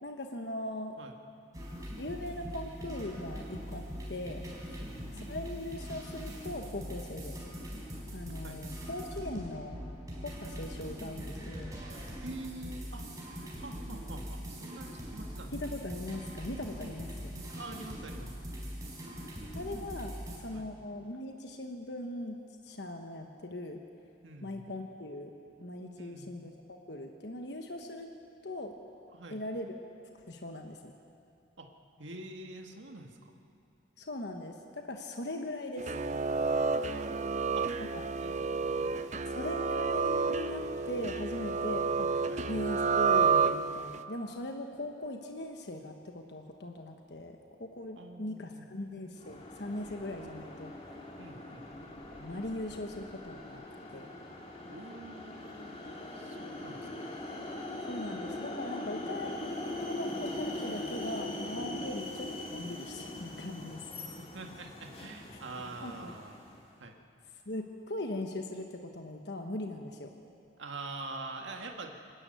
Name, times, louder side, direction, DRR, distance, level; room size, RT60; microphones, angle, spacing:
voice 1, 0.0-1.0 2.0-4.8 5.1-7.4 8.1-9.9 10.2-11.8 15.5-17.5 19.5-20.2 20.4-23.8 24.4-25.3 25.6-28.1 28.4-28.8 29.3-29.7 30.3-30.9 34.0-35.9 37.8-38.1 39.3-42.2 42.5-50.7 52.2-53.6 53.9-54.1 57.9-59.4 59.8-63.9 65.3-65.4 65.8-66.1 67.5-70.1, left 1 dB, 65° left, 3 dB, 1.3 m, -40 dB
sound 1, 1.5-20.4, equal, 20° right, 4.5 m, -42 dB
voice 2, 4.8-5.1 8.4-8.6 12.2-13.3 13.5-15.5 17.5-18.4 20.5-20.7 24.2-24.7 26.0-26.4 29.1-29.4 31.6-31.7 32.0-33.3 36.9-37.7 38.2-38.9 42.3-42.4 48.0-48.7 51.2-51.7 54.7-55.9 56.1-57.1 61.8-61.9 64.1-66.4 66.8-67.0 70.6-72.0, right 2 dB, 80° right, 3 dB, 1.8 m, -45 dB
sound 2, 35.8-44.0, right 5 dB, 40° right, 0.6 m, -30 dB
sound 3, 49.2-66.7, left 1 dB, 30° left, 2.8 m, -41 dB
25.0 x 13.5 x 9.2 m, 2.6 s
head